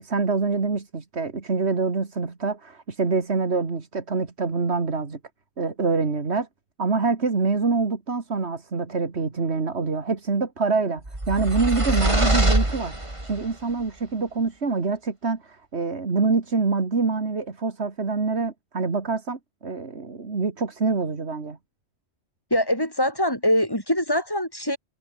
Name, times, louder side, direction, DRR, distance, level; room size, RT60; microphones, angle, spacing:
voice 1, 0.0-5.2 5.6-6.5 6.8-13.0 13.2-21.6, right 4 dB, 75° right, 2.4 m, -25 dB
sound 1, 11.1-13.5, right 1 dB, 25° right, 3.6 m, -23 dB
voice 2, 22.5-24.8, left 1 dB, 20° left, 7.2 m, -23 dB
omnidirectional pair, 1.1 m